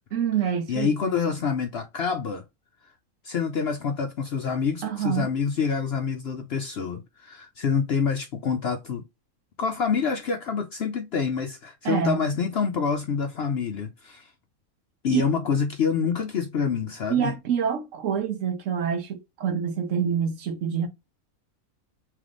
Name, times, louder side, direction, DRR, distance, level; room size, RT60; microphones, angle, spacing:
voice 1, 0.1-0.9 4.8-5.3 11.8-12.2 15.1-15.2 17.1-20.9, right 8 dB, 65° right, 1.1 m, -26 dB
voice 2, 0.7-2.4 3.2-9.0 9.6-14.3 15.0-17.3, left 6 dB, 65° left, 0.7 m, -27 dB
3.4 x 3.3 x 3.6 m
omnidirectional pair, 1.5 m